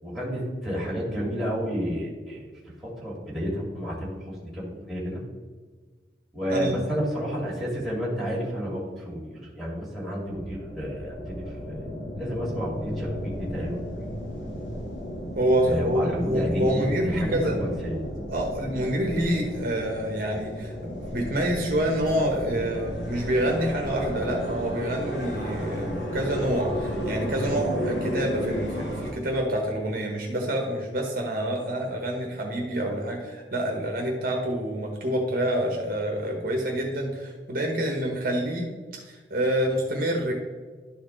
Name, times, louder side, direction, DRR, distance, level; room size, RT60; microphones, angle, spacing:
voice 1, 0.0-2.5 2.8-4.1 4.5-5.2 6.3-14.1 15.6-18.0, equal, ahead, -7 dB, 2.2 m, -31 dB
sound 1, 10.2-29.1, equal, 85° left, 2.0 m, -33 dB
voice 2, 15.3-17.6 18.3-38.7 39.0-40.3, right 1 dB, 55° right, 1 dB, 1.1 m, -27 dB
11.0 x 4.3 x 3.8 m, 1.4 s
head